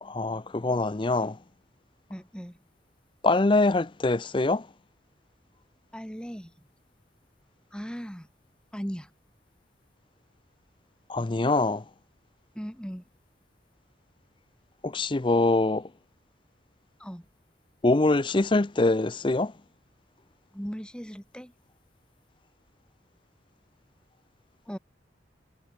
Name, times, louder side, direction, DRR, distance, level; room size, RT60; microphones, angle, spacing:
voice 1, 0.0-1.4 3.2-4.6 11.1-11.8 14.8-15.9 17.8-19.5, left 2 dB, 25° left, 0.5 m, -24 dB
voice 2, 2.1-2.6 5.9-6.5 7.7-8.3 8.7-9.1 12.5-13.0 17.0-17.3 20.5-21.5 24.7-24.8, equal, 5° left, 7.4 m, -37 dB
head